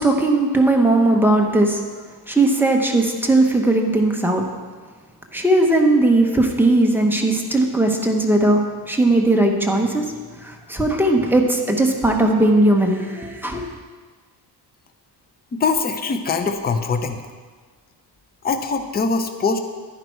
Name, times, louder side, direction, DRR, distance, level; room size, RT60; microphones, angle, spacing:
voice 1, 0.0-1.8 2.3-4.4 5.3-10.1 10.4-13.7, right 2 dB, 5° right, 1 dB, 0.9 m, -18 dB
voice 2, 15.5-17.2 18.4-19.6, left 4 dB, 25° left, 7 dB, 0.6 m, -22 dB
11.0 x 10.5 x 4.6 m, 1.5 s
cardioid pair, 155°, 41 cm